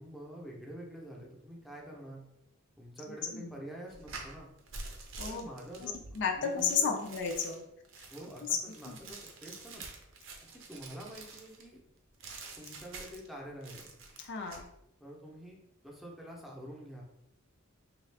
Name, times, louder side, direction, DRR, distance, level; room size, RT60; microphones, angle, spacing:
voice 1, 0.0-2.2 2.8-4.5 5.3-7.0 8.1-9.8 10.4-11.8 12.6-13.9 15.0-17.0, right 1 dB, ahead, -3 dB, 0.7 m, -47 dB
voice 2, 3.1-3.5 5.2-5.5 5.8-7.6 8.9-9.1 14.2-14.6, left 6 dB, 60° left, 3 dB, 0.4 m, -33 dB
sound 1, 3.9-11.7 12.2-13.3 13.6-14.6, right 3 dB, 65° right, 0.6 m, -47 dB
3.5 x 2.4 x 3.3 m, 0.82 s
head